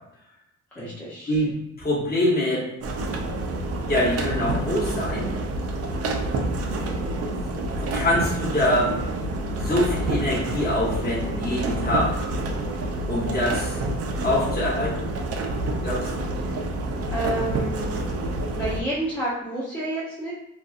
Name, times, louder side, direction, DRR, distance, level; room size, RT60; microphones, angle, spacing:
voice 1, 0.7-1.4 16.4-16.5 17.1-18.1 18.5-20.3, right 1 dB, 5° left, -8 dB, 0.6 m, -30 dB
voice 2, 1.3-2.6 3.9-5.3 7.2-7.5 7.8-9.0 9.6-12.2 13.1-13.8 14.2-15.1 15.8-16.2, left 1 dB, 30° left, -5 dB, 1.1 m, -24 dB
sound 1, 2.8-18.8, right 2 dB, 55° right, 0.5 m, -28 dB
2.6 x 2.4 x 2.4 m, 0.87 s
cardioid pair, 90°, 30 cm